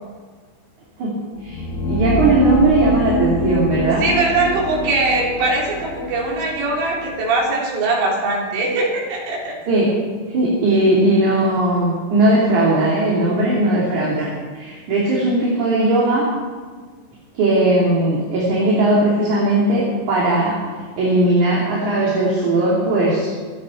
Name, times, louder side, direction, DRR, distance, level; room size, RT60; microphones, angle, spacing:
sound 1, 1.4-7.3, left 1 dB, 85° left, 5.6 m, -24 dB
voice 1, 1.9-4.0 9.7-9.9 10.3-14.3 14.5-16.3 17.3-20.5 21.0-23.4, right 1 dB, 45° right, -5 dB, 3.5 m, -18 dB
voice 2, 4.0-9.6, right 2 dB, 70° right, -4 dB, 6.2 m, -21 dB
26.5 x 10.5 x 4.4 m, 1.5 s
omnidirectional pair, 5.8 m